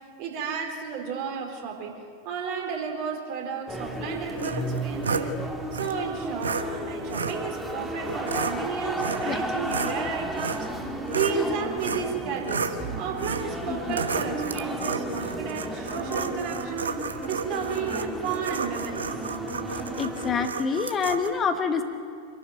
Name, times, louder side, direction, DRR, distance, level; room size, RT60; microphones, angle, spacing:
voice 1, 0.2-2.0 2.2-5.4 5.7-10.7 11.1-16.9 17.3-19.1, right 6 dB, 45° right, 2 dB, 4.0 m, -33 dB
sound 1, 3.7-20.5, right 1 dB, 5° right, 2.0 m, -33 dB
sound 2, 4.4-5.3 5.7-5.9 6.4-6.6 7.1-7.4 8.1-8.6 9.0-9.4 9.7-11.4 11.8-12.1 12.4-12.8 13.2-13.5 13.9-21.3, right 5 dB, 70° right, 1.1 m, -32 dB
voice 2, 13.7-14.0 20.0-21.8, left 5 dB, 25° left, 7 dB, 1.3 m, -27 dB
26.0 x 12.0 x 9.3 m, 2.3 s
figure-of-eight pair, 90°, 0 cm